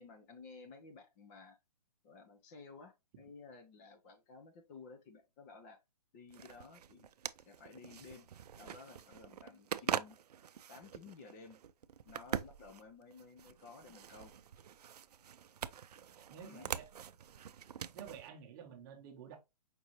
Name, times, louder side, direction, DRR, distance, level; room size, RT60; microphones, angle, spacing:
voice 1, 0.0-1.6 2.0-5.8 6.1-7.1 7.5-8.3 8.6-10.2 10.7-11.6 12.0-14.3 16.4-16.7, left 4 dB, 25° left, 0.6 m, -54 dB
sound 1, 6.3-18.3, right 8 dB, 75° right, 0.4 m, -44 dB
voice 2, 16.3-16.9 17.9-19.4, right 7 dB, 30° right, 0.9 m, -50 dB
5.2 x 2.7 x 3.0 m
hypercardioid pair, 140°, 21 cm